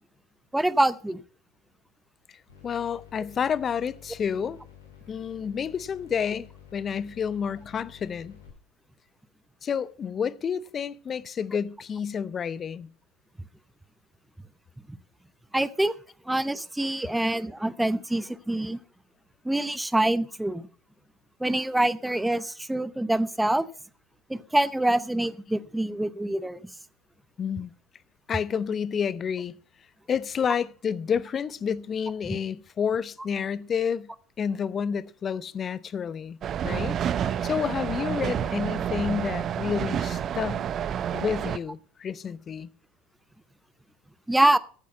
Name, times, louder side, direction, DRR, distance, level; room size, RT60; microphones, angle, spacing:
voice 1, 0.5-1.2 14.9-15.0 15.5-15.9 16.3-18.8 19.4-20.6 21.4-23.7 24.3-26.6 32.3-32.4 44.3-44.6, right 1 dB, 5° right, 0.8 m, -25 dB
voice 2, 2.3-4.6 5.1-8.4 9.6-12.9 27.4-27.7 28.3-29.5 30.1-34.1 34.4-36.4 36.6-40.6 41.1-42.7, left 7 dB, 35° left, 0.7 m, -30 dB
sound 1, 2.5-8.5, left 10 dB, 80° left, 6.7 m, -51 dB
sound 2, 36.4-41.6, right 9 dB, 40° right, 0.7 m, -29 dB
14.5 x 8.4 x 5.6 m
hypercardioid pair, 75°, 0 cm